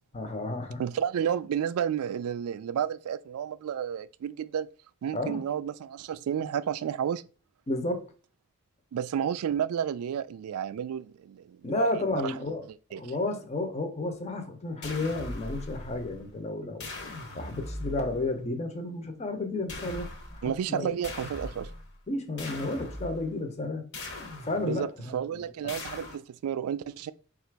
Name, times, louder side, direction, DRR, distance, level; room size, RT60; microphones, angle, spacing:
voice 1, 0.1-0.8 5.1-5.4 7.7-8.0 11.6-12.6 12.9-16.9 17.3-21.0 22.1-23.8 24.4-25.2 25.6-25.8, left 2 dB, 30° left, 0.6 m, -32 dB
voice 2, 0.8-4.7 5.0-7.2 8.9-12.4 12.9-13.0 20.4-21.7 24.6-27.1, right 8 dB, 85° right, 0.3 m, -31 dB
sound 1, 14.8-16.4 16.8-18.4 19.7-20.6 21.0-22.0 22.4-23.3 23.9-24.9 25.7-26.2, left 2 dB, 55° left, 0.9 m, -40 dB
3.9 x 2.4 x 4.5 m
head